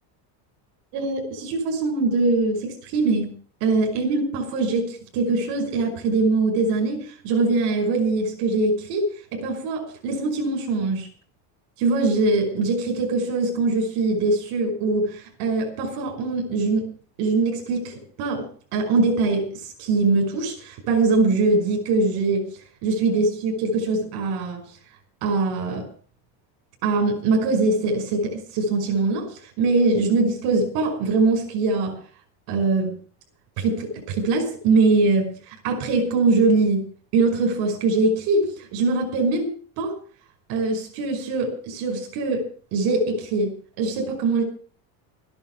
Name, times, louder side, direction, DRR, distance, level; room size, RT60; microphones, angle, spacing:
voice 1, 0.9-3.3 3.6-11.1 11.8-16.9 17.2-22.5 22.8-24.7 25.2-25.9 26.8-32.0 32.5-33.0 33.6-36.9 37.1-39.5 39.8-40.0 40.5-44.4, right 3 dB, 65° right, 3 dB, 5.5 m, -22 dB
14.0 x 11.0 x 7.1 m, 0.43 s
cardioid pair, 150°, 44 cm